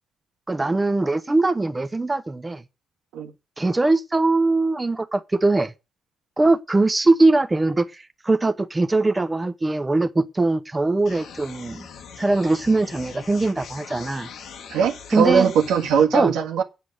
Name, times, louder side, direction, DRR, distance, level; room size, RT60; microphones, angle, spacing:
voice 1, 0.5-2.6 3.6-5.7 6.4-11.9 12.2-14.3 15.1-15.5 16.1-16.3, right 2 dB, 20° right, 0.9 m, -21 dB
sound 1, 11.0-16.0, left 6 dB, 75° left, 1.8 m, -41 dB
voice 2, 14.7-16.6, right 7 dB, 85° right, 1.6 m, -20 dB
8.4 x 8.3 x 6.4 m
cardioid pair, 90°, 0 cm